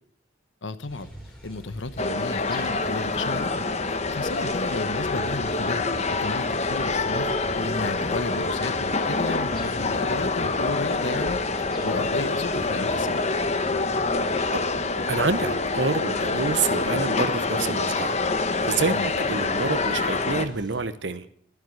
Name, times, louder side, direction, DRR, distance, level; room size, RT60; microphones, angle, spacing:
voice 1, 0.6-1.1 1.4-5.8 6.1-13.2 18.8-19.1, left 2 dB, 75° left, 1.1 m, -33 dB
sound 1, 0.9-20.8, equal, 5° left, 3.8 m, -44 dB
sound 2, 2.0-20.5, left 3 dB, 35° left, 1.0 m, -26 dB
voice 2, 15.1-18.2 18.6-21.3, right 4 dB, 70° right, 1.0 m, -27 dB
12.5 x 12.0 x 7.9 m
head